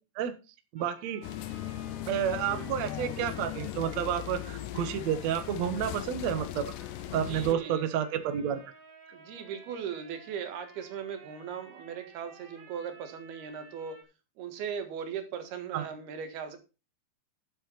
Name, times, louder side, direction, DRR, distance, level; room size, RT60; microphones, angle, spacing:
voice 1, 0.7-1.2 2.1-6.7 7.1-8.6 15.7-15.8, right 9 dB, 60° right, 10 dB, 2.0 m, -30 dB
sound 1, 0.8-14.0, right 3 dB, 30° right, 1.8 m, -54 dB
sound 2, 1.2-7.5, left 14 dB, 80° left, 2.0 m, -38 dB
voice 2, 7.1-7.9 9.1-14.0 14.4-16.6, right 7 dB, 85° right, 7 dB, 3.7 m, -38 dB
12.0 x 7.5 x 4.1 m, 0.30 s
omnidirectional pair, 4.3 m